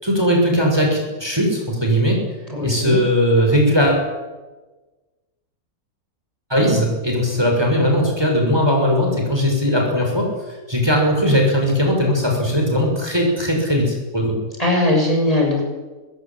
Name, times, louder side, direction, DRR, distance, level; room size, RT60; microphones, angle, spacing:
voice 1, 0.0-2.2 2.6-4.1 6.5-10.3 10.7-14.3, equal, 15° right, 0 dB, 6.5 m, -18 dB
voice 2, 2.5-3.0 14.6-15.6, left 2 dB, 20° left, 0 dB, 7.2 m, -19 dB
24.5 x 21.0 x 9.1 m, 1.2 s
omnidirectional pair, 1.6 m